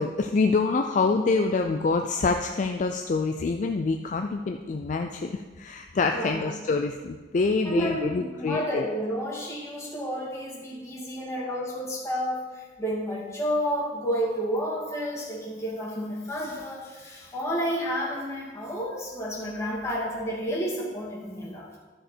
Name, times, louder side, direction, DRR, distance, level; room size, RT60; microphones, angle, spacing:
voice 1, 0.0-8.9, left 4 dB, 45° left, 5 dB, 0.4 m, -26 dB
voice 2, 6.1-6.5 7.6-21.8, equal, 15° left, -5 dB, 2.2 m, -31 dB
12.5 x 5.1 x 4.5 m, 1.4 s
head